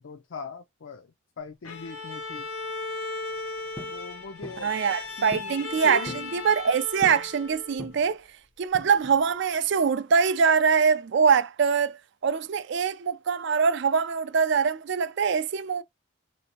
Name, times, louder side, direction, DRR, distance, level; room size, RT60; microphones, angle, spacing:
voice 1, 0.0-2.5 3.9-4.8 5.2-6.4 6.7-6.8, left 4 dB, 60° left, 0.4 m, -40 dB
Bowed string instrument, 1.6-7.9, left 3 dB, 85° left, 0.9 m, -37 dB
sound 1, 3.8-4.0 4.4-4.7 5.3-5.6 5.8-6.3 7.0-7.3 7.8-8.2 8.7-9.2, left 1 dB, 10° left, 0.5 m, -41 dB
voice 2, 4.6-8.2 8.6-15.8, right 6 dB, 55° right, 0.4 m, -23 dB
4.2 x 2.7 x 2.8 m
head